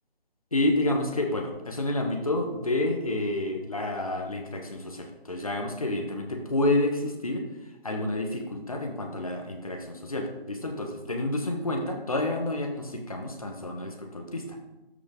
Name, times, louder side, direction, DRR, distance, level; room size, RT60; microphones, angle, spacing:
voice 1, 0.5-7.4 7.8-14.6, left 1 dB, 35° left, 3 dB, 1.3 m, -29 dB
13.0 x 5.8 x 3.7 m, 1.0 s
figure-of-eight pair, 175°, 30 cm